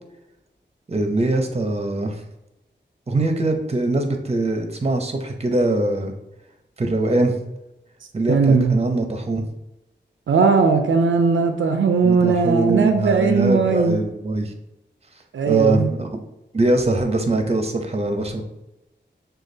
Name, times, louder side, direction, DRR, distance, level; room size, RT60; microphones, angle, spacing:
voice 1, 0.9-2.2 3.1-6.1 6.8-7.3 8.1-9.5 12.0-14.5 15.5-16.2 16.5-18.4, right 2 dB, 35° right, 5 dB, 0.6 m, -22 dB
voice 2, 8.3-8.8 10.3-14.0 15.3-15.9, right 5 dB, 85° right, 6 dB, 0.4 m, -18 dB
6.3 x 2.3 x 2.7 m, 0.89 s
wide cardioid pair, 60°, 19 cm